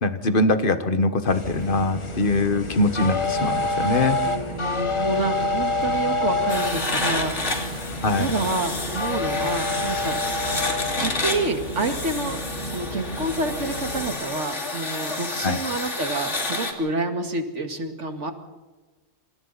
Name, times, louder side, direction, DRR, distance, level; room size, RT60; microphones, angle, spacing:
voice 1, 0.0-4.2 8.0-8.3 15.4-15.6, left 2 dB, 50° left, 10 dB, 1.6 m, -22 dB
sound 1, 1.3-11.3, left 3 dB, 25° left, 1.1 m, -28 dB
sound 2, 1.3-14.1, equal, 65° right, 7.1 m, -35 dB
voice 2, 4.2-7.8 8.2-10.2 10.9-18.3, right 2 dB, 85° right, 6 dB, 2.3 m, -28 dB
sound 3, 6.5-16.7, left 2 dB, 80° left, 3.2 m, -30 dB
27.5 x 26.5 x 4.1 m, 1.2 s
omnidirectional pair, 1.2 m